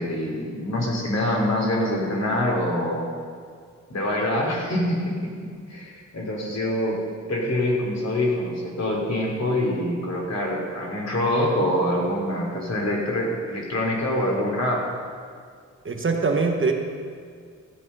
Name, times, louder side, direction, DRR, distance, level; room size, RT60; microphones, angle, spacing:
voice 1, 0.0-3.1 3.9-7.0 7.3-14.8, left 1 dB, 60° left, -2 dB, 2.9 m, -25 dB
voice 2, 15.8-16.7, right 4 dB, 40° right, 3 dB, 1.1 m, -22 dB
14.0 x 9.1 x 5.5 m, 2.1 s
wide cardioid pair, 150°, 30 cm